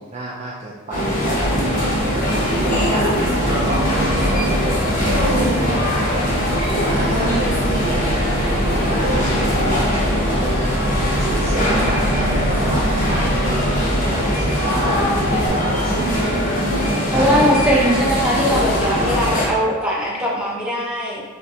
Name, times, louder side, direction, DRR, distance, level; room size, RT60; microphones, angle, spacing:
voice 1, 0.0-7.4 7.8-16.6 17.1-17.7 18.0-18.4, right 2 dB, 30° right, -5 dB, 0.4 m, -31 dB
sound 1, 0.9-19.5, equal, 40° left, 1.0 m, -20 dB
Bus, 1.4-15.5, equal, 45° right, 1.0 m, -26 dB
voice 2, 17.1-21.2, equal, 5° right, -6 dB, 0.8 m, -20 dB
5.7 x 2.2 x 2.7 m, 1.3 s
head